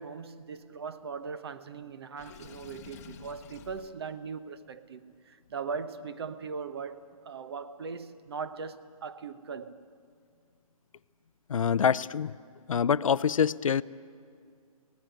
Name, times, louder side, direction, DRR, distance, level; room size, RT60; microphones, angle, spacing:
voice 1, 0.0-9.9, right 5 dB, 45° right, 1.1 m, -39 dB
Water / Sink (filling or washing), 2.2-3.9, left 8 dB, 25° left, 1.0 m, -49 dB
voice 2, 11.5-12.3 12.7-13.8, left 7 dB, 60° left, 0.6 m, -25 dB
24.0 x 18.0 x 9.2 m
hypercardioid pair, 165°, 19 cm